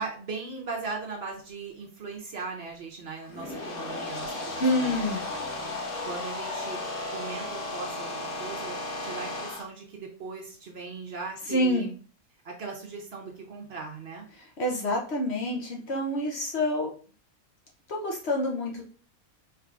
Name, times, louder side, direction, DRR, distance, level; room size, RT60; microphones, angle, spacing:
voice 1, 0.0-4.9 5.7-6.8 7.1-8.8 9.0-11.9 12.4-14.3, right 4 dB, 55° right, 1 dB, 0.9 m, -38 dB
sound 1, 3.2-9.6, left 2 dB, 85° left, 1.7 m, -34 dB
voice 2, 4.6-5.3 11.5-11.9 14.6-16.9 17.9-18.8, left 1 dB, 55° left, 0 dB, 0.9 m, -27 dB
4.7 x 3.2 x 2.4 m, 0.40 s
omnidirectional pair, 1.5 m